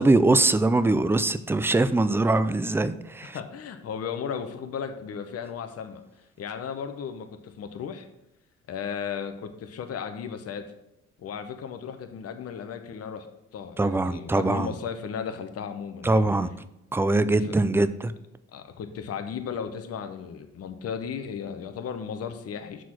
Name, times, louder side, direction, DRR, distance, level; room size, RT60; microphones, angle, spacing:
voice 1, 0.0-3.4 13.8-14.7 16.0-16.5 16.9-18.1, right 2 dB, 10° right, 13 dB, 0.4 m, -22 dB
voice 2, 3.2-6.0 6.4-8.1 8.7-10.7 11.2-13.3 13.5-16.2 17.4-17.6 18.5-22.8, left 7 dB, 55° left, 7 dB, 0.8 m, -35 dB
6.3 x 4.7 x 5.9 m, 0.85 s
cardioid pair, 90°, 30 cm